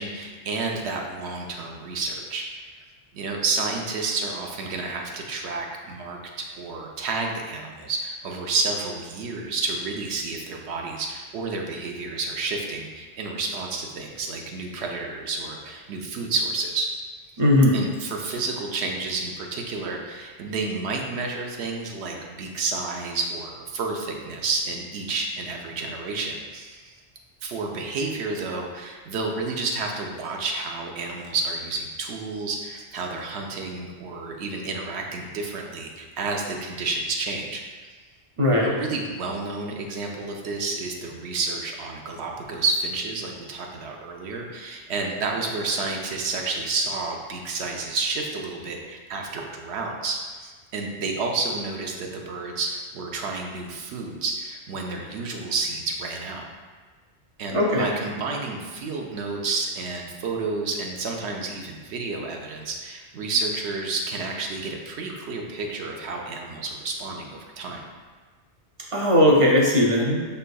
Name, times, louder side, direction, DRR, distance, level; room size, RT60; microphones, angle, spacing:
voice 1, 0.0-2.7 3.1-6.2 6.6-16.9 17.7-26.9 27.4-37.6 38.6-56.4 57.4-67.9, right 3 dB, 75° right, 1 dB, 0.9 m, -30 dB
voice 2, 17.4-17.8 38.4-38.8 57.5-57.8 68.9-70.2, left 1 dB, 45° right, -2 dB, 0.4 m, -18 dB
5.3 x 3.3 x 2.2 m, 1.5 s
omnidirectional pair, 1.2 m